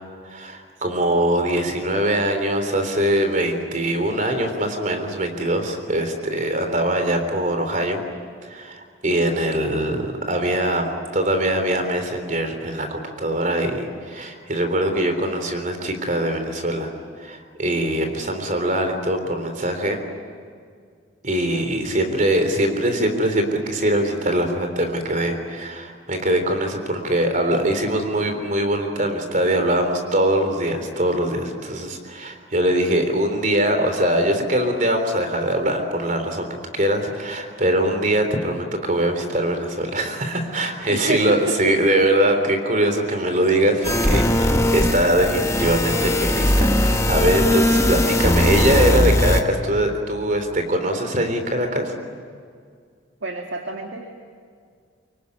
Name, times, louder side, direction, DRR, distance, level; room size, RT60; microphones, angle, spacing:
voice 1, 0.3-8.0 8.4-16.9 17.2-20.0 21.2-36.5 36.7-51.9, right 1 dB, 40° right, 6 dB, 3.7 m, -22 dB
voice 2, 40.9-41.7 53.2-54.1, right 2 dB, 70° right, 3 dB, 2.1 m, -29 dB
sound 1, 43.8-49.4, left 1 dB, 15° left, 1.3 m, -19 dB
25.5 x 23.5 x 9.7 m, 2.1 s
head